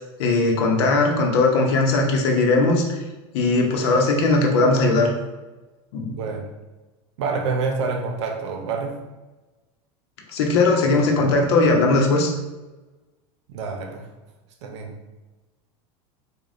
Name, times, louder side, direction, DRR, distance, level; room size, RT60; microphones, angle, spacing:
voice 1, 0.2-3.0 3.3-5.1 5.9-6.2 10.3-12.3, left 3 dB, 70° left, 1 dB, 0.8 m, -19 dB
voice 2, 6.0-6.4 7.2-9.0 13.5-14.1 14.6-14.9, right 4 dB, 85° right, 3 dB, 0.7 m, -27 dB
5.0 x 2.3 x 2.6 m, 1.1 s
supercardioid pair, 120°, 15 cm